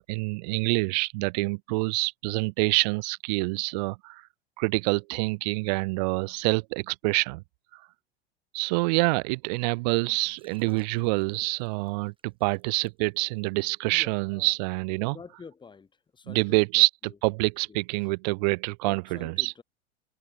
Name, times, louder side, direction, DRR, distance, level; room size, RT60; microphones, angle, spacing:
voice 1, 0.0-4.2 4.6-7.4 7.7-7.8 8.5-15.2 16.3-19.5, right 27 dB, 40° right, 0.5 m, -26 dB
Liquid, 10.1-13.4 13.7-14.0, right 5 dB, 15° right, 6.3 m, -63 dB
voice 2, 13.9-14.5 15.0-15.9 16.1-16.8 17.7-17.8 18.9-19.6, left 5 dB, 15° left, 2.1 m, -47 dB
figure-of-eight pair, 95°, 33 cm